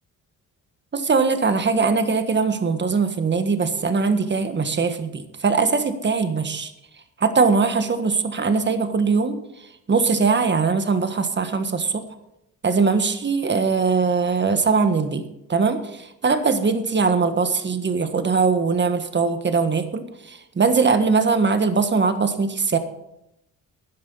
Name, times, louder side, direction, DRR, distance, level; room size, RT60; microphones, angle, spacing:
voice 1, 0.9-6.7 7.2-9.4 9.9-12.0 12.6-15.2 15.5-22.8, right 4 dB, 35° right, 9 dB, 1.5 m, -21 dB
13.0 x 9.9 x 5.4 m, 0.84 s
cardioid pair, 90°, 34 cm